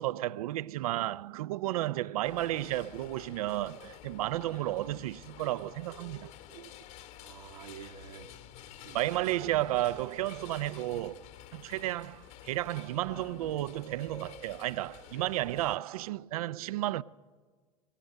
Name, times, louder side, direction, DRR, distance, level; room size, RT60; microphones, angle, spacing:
voice 1, 0.0-6.7 8.9-17.0, right 15 dB, 70° right, 0.5 m, -33 dB
sound 1, 2.2-15.8, left 11 dB, 60° left, 1.8 m, -51 dB
voice 2, 7.2-8.3 8.6-9.1 16.6-16.7, right 8 dB, 90° right, 2.1 m, -49 dB
21.5 x 19.5 x 6.6 m
hypercardioid pair, 100°, 20 cm